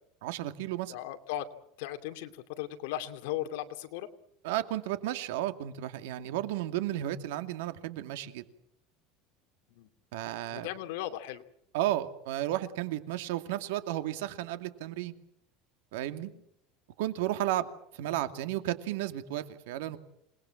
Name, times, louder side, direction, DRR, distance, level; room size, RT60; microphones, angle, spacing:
voice 1, 0.2-0.9 4.4-8.4 10.1-10.7 11.7-15.1 15.9-16.3 17.0-17.7 17.9-20.0, right 13 dB, 85° right, 9 dB, 2.4 m, -33 dB
voice 2, 0.9-1.5 1.8-4.1 9.7-9.9 10.5-11.4, left 13 dB, 75° left, 8 dB, 2.5 m, -37 dB
28.0 x 20.0 x 7.7 m, 0.75 s
cardioid pair, 170°, 0 cm